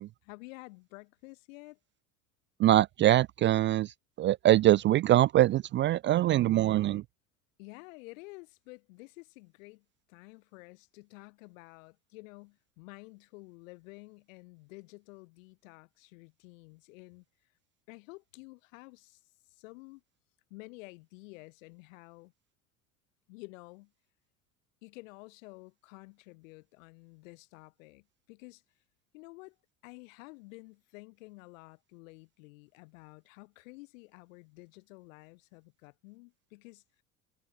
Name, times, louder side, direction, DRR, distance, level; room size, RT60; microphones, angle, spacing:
voice 1, 0.2-1.8 7.6-17.2 17.9-19.2 19.5-20.0 20.5-22.3 23.3-23.9 24.8-28.6 29.1-29.6 29.8-37.0, left 25 dB, 70° left, 3.0 m, -51 dB
voice 2, 2.6-7.0, right 14 dB, 30° right, 0.3 m, -23 dB
hypercardioid pair, 75°, 41 cm